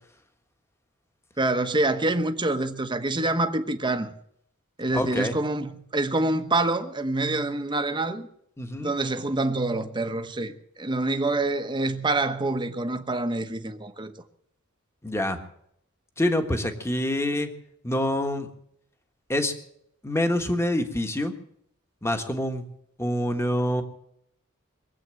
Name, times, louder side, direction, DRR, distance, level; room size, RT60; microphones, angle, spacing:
voice 1, 1.4-4.1 4.8-8.3 8.8-14.1, right 2 dB, 20° right, 1.0 m, -26 dB
voice 2, 4.9-5.4 8.6-8.9 15.0-15.4 16.2-17.5 17.8-18.5 19.3-19.5 20.0-21.3 22.0-22.6 23.0-23.8, left 1 dB, 10° left, 1.4 m, -26 dB
22.0 x 8.2 x 7.6 m
head